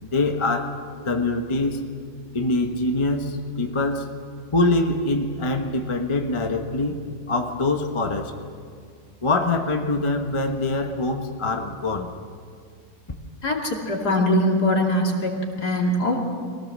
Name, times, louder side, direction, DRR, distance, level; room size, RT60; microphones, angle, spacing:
voice 1, 0.0-1.9 2.3-4.1 4.5-7.0 7.3-8.3 9.2-12.1, left 2 dB, 20° left, 5 dB, 0.9 m, -24 dB
voice 2, 13.4-15.3 15.6-16.2, left 1 dB, 60° left, 0 dB, 3.1 m, -22 dB
23.0 x 17.5 x 7.4 m, 2.2 s
omnidirectional pair, 2.0 m